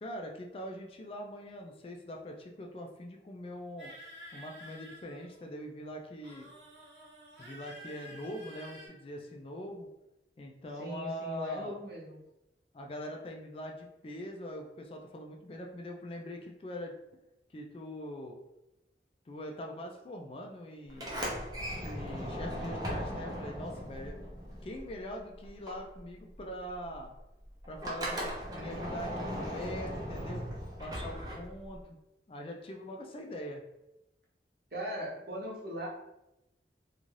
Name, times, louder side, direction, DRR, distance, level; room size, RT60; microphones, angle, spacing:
voice 1, 0.0-3.9 4.3-6.5 7.4-9.9 10.4-11.8 12.7-16.9 17.5-18.4 19.3-21.1 21.8-24.2 24.6-27.1 27.7-30.4 30.8-32.0 32.3-33.6, equal, 30° left, 2 dB, 0.3 m, -42 dB
sound 1, 3.8-5.6 6.2-8.9, equal, 85° right, 1.1 m, -50 dB
voice 2, 10.7-12.2 34.7-35.9, equal, 60° right, -4 dB, 0.9 m, -39 dB
Sliding door, 20.9-25.2 25.4-31.8, equal, 20° right, 0.5 m, -38 dB
2.6 x 2.3 x 3.1 m, 0.90 s
head